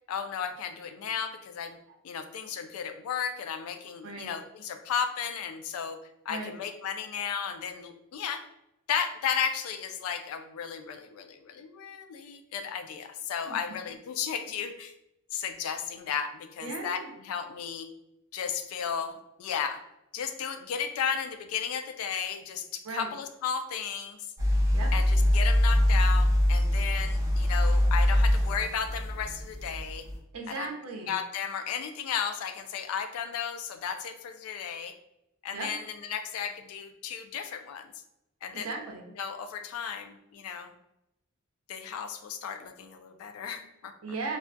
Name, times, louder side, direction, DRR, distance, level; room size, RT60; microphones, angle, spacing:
voice 1, 0.1-1.8 2.0-6.0 6.3-8.4 8.9-14.9 15.3-17.9 18.3-19.8 20.1-24.2 24.9-30.1 30.5-30.7 31.1-34.9 35.4-37.9 38.4-38.7 39.2-40.7 41.7-43.9, left 7 dB, 85° left, 8 dB, 0.3 m, -34 dB
voice 2, 4.0-4.3 6.3-6.5 13.4-13.6 16.6-17.1 22.8-23.1 24.7-24.9 30.3-31.2 35.5-35.7 38.5-39.1 44.0-44.4, right 3 dB, 75° right, 2 dB, 0.5 m, -37 dB
sound 1, 24.4-30.2, left 1 dB, 15° right, 0.5 m, -24 dB
2.3 x 2.1 x 2.6 m, 0.85 s
head